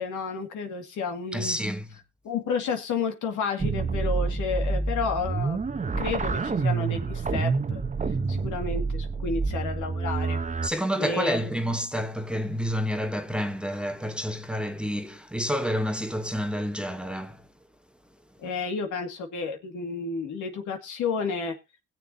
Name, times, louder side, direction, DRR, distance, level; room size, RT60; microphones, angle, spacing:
voice 1, 0.0-1.6 2.2-5.6 6.0-7.8 8.3-10.4 11.0-11.5 18.4-21.6, left 5 dB, 80° left, 2.2 m, -31 dB
voice 2, 1.3-1.9 10.6-17.4, equal, 5° right, 1.1 m, -29 dB
sound 1, 3.6-10.7, right 4 dB, 25° right, 0.9 m, -28 dB
20.5 x 7.3 x 2.8 m
cardioid pair, 90°, 30 cm